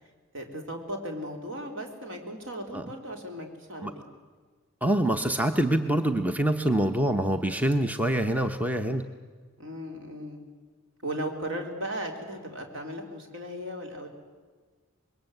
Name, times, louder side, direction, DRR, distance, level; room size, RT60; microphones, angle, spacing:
voice 1, 0.3-4.0 9.6-10.4 11.0-14.1, right 1 dB, 60° right, 3 dB, 3.5 m, -36 dB
voice 2, 4.8-9.0, right 1 dB, 5° right, 7 dB, 0.7 m, -25 dB
25.5 x 21.5 x 7.9 m, 1.5 s
head